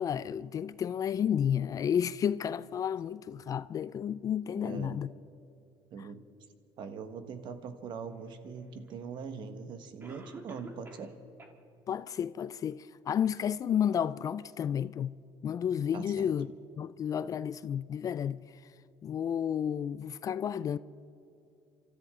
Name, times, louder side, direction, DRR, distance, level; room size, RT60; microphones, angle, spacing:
voice 1, 0.0-5.1 11.9-15.2 15.4-18.4 19.0-20.8, left 8 dB, 35° left, 0.4 m, -31 dB
voice 2, 4.6-5.0 5.9-6.2 6.8-11.1 15.9-16.3, right 5 dB, 55° right, 1.4 m, -42 dB
Cough, 8.9-9.0 10.0-11.1 11.4-11.5 12.1-12.2 12.7-12.8, right 2 dB, 20° right, 2.0 m, -48 dB
28.5 x 13.5 x 3.7 m
cardioid pair, 110°, 10 cm